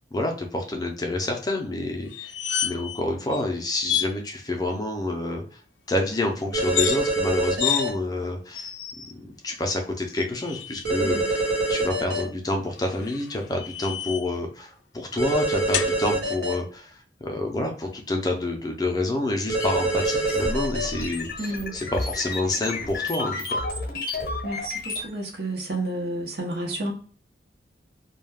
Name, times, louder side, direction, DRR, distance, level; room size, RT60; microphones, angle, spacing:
voice 1, 0.1-2.3 2.6-5.6 5.9-8.7 9.2-23.6, left 2 dB, 20° left, 2 dB, 0.4 m, -28 dB
sound 1, 2.1-3.0 3.3-3.4 3.8-4.1 6.6-7.0 7.6-7.8 8.5-9.1 10.1-10.9 12.8-14.4 15.7-15.9, left 9 dB, 90° left, 0.3 m, -29 dB
sound 2, 6.5-7.9 10.8-12.2 15.2-16.5 19.5-20.8, right 2 dB, 85° right, 1.0 m, -25 dB
sound 3, 19.6-25.1, left 2 dB, 55° left, 0.7 m, -32 dB
voice 2, 21.4-21.8 24.4-26.9, right 1 dB, 65° right, 1 dB, 0.8 m, -31 dB
2.2 x 2.2 x 3.3 m, 0.42 s
head